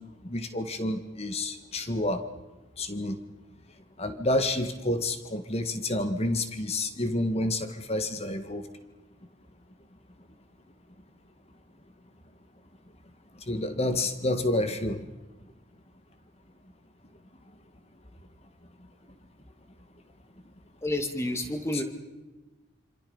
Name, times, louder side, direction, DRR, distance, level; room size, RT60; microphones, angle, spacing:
voice 1, 0.0-2.2 2.8-3.2 4.0-8.7 13.4-15.1, left 1 dB, 30° left, 8 dB, 1.8 m, -29 dB
voice 2, 20.8-21.8, left 1 dB, 15° left, 5 dB, 2.2 m, -29 dB
27.0 x 26.5 x 5.6 m, 1.1 s
head